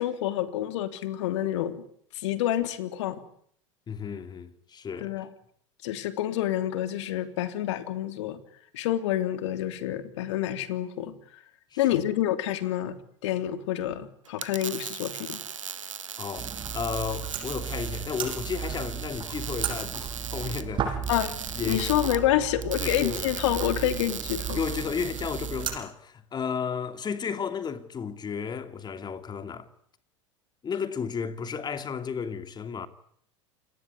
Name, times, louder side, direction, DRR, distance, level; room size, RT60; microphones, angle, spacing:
voice 1, 0.0-1.8 2.1-3.2 5.0-5.3 5.8-8.4 8.7-11.2 11.8-12.9 13.2-15.4 21.1-24.6, left 12 dB, 65° left, 3.2 m, -28 dB
voice 2, 3.9-5.2 11.7-11.8 15.8-15.9 16.2-21.0 21.5-22.0 22.4-22.5 22.8-23.2 24.5-29.7 30.6-32.9, left 6 dB, 25° left, 2.8 m, -33 dB
sound 1, 14.2-25.7, right 7 dB, 85° right, 1.5 m, -38 dB
sound 2, 16.4-25.8, right 8 dB, 30° right, 7.7 m, -35 dB
28.5 x 20.0 x 9.8 m
hypercardioid pair, 85°, 16 cm